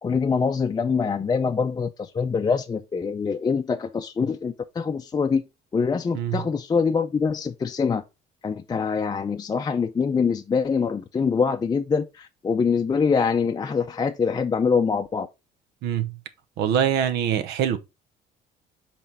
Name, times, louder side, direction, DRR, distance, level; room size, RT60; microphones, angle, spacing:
voice 1, 0.0-5.4 5.7-8.0 8.4-15.3, left 5 dB, 25° left, 0.5 m, -24 dB
voice 2, 15.8-16.2 16.6-17.8, right 9 dB, 80° right, 0.8 m, -24 dB
5.6 x 4.4 x 4.3 m
cardioid pair, 110°, 17 cm